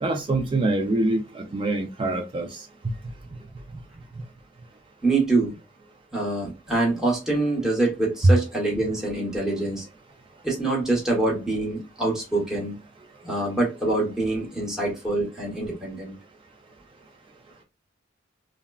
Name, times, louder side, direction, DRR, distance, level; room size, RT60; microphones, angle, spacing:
voice 1, 0.0-2.5 2.8-2.9, right 2 dB, 25° right, 0.4 m, -25 dB
voice 2, 5.0-5.6 6.1-9.8 10.4-12.7 13.2-16.1, right 2 dB, 5° right, 0.9 m, -25 dB
3.5 x 2.1 x 2.2 m
head